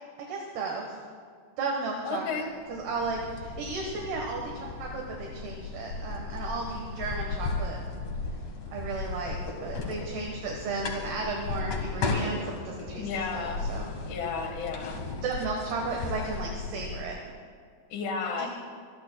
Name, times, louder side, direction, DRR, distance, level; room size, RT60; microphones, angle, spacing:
voice 1, 0.2-1.0 1.6-7.8 8.7-13.9 15.2-17.2 18.4-18.5, right 3 dB, 65° right, -1 dB, 3.1 m, -34 dB
voice 2, 2.0-2.4 13.0-13.6 14.1-15.0 17.9-18.5, left 5 dB, 85° left, 4 dB, 4.1 m, -32 dB
sound 1, 2.5-17.0, left 4 dB, 55° left, 1.8 m, -36 dB
25.5 x 22.0 x 2.3 m, 2.1 s
omnidirectional pair, 5.3 m